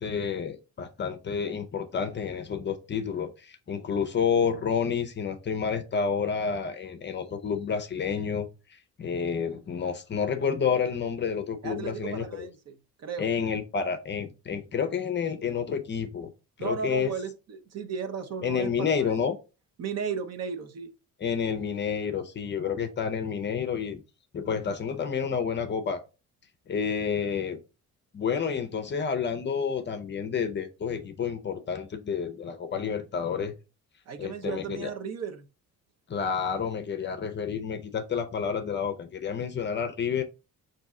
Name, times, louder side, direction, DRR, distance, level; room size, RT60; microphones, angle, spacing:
voice 1, 0.0-12.5 13.2-16.3 16.6-17.1 18.4-19.4 21.2-24.0 24.3-26.0 26.7-27.6 28.1-33.5 34.2-34.9 36.1-40.2, left 6 dB, 35° left, 0.5 m, -29 dB
voice 2, 11.6-13.3 16.6-19.2 19.8-20.9 34.1-35.5, right 6 dB, 50° right, 0.8 m, -35 dB
5.3 x 2.7 x 3.6 m
cardioid pair, 150°, 33 cm